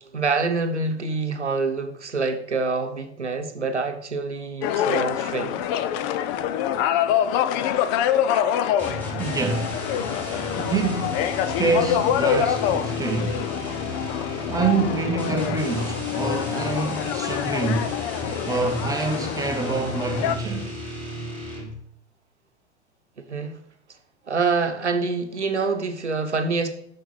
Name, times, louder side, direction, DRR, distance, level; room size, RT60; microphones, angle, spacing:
voice 1, 0.0-5.6 23.2-23.6 24.3-26.7, right 4 dB, 90° right, 1.0 m, -26 dB
sound 1, 4.6-20.4, left 10 dB, 30° left, 0.4 m, -26 dB
sound 2, 8.8-21.9, equal, 5° left, 3.2 m, -35 dB
voice 2, 9.2-9.8 10.6-11.2 11.6-13.4 14.5-17.9 18.5-20.8, right 4 dB, 10° right, 0.7 m, -26 dB
8.7 x 6.6 x 3.3 m
figure-of-eight pair, 100°, 33 cm